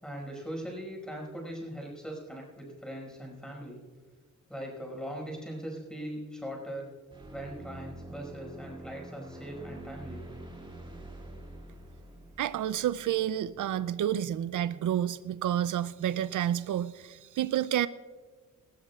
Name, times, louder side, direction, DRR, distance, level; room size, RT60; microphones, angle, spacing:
voice 1, 0.0-3.8 4.5-6.9 7.3-10.2, equal, ahead, -1 dB, 5.3 m, -40 dB
sound 1, 7.1-13.8, right 1 dB, 15° right, 2.5 m, -46 dB
voice 2, 12.4-17.9, right 11 dB, 80° right, 15 dB, 0.5 m, -29 dB
20.0 x 19.5 x 2.4 m, 1.4 s
wide cardioid pair, 165°, 30 cm